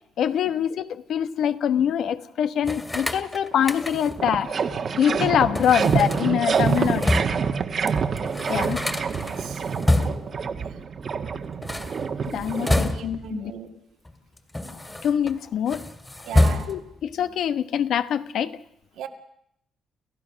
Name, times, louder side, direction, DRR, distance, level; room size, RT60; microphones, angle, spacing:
voice 1, 0.2-4.5 5.0-7.0 8.5-8.8 12.3-13.5 15.0-15.8 16.7-18.6, left 9 dB, 70° left, 1.1 m, -24 dB
sound 1, 2.6-4.3 5.5-7.5 7.9-8.0 8.2-10.4 11.5-13.3 14.1-15.3 15.7-17.0, left 1 dB, 15° left, 2.2 m, -27 dB
sound 2, 3.5-3.6 3.9-13.3, right 6 dB, 50° right, 1.5 m, -27 dB
voice 2, 9.2-9.6 10.6-10.8 12.6-13.7 16.2-16.8 18.9-19.1, right 9 dB, 80° right, 2.3 m, -38 dB
29.5 x 15.0 x 6.4 m
cardioid pair, 90°, 0 cm